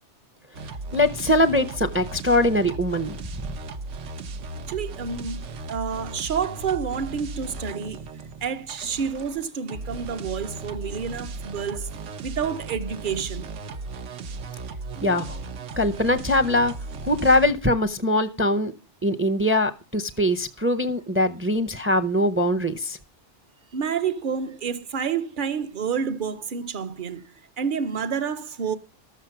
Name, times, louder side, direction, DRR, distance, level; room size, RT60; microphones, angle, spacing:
sound 1, 0.5-17.5, right 3 dB, 85° right, 1.1 m, -36 dB
voice 1, 0.9-3.1 15.0-15.4 15.8-16.7 17.0-18.7 19.0-23.0, left 1 dB, 15° right, 0.4 m, -22 dB
voice 2, 4.7-8.0 8.4-11.9 12.2-13.5 23.7-28.8, right 6 dB, 50° right, 0.8 m, -29 dB
13.0 x 7.3 x 5.8 m
omnidirectional pair, 1.2 m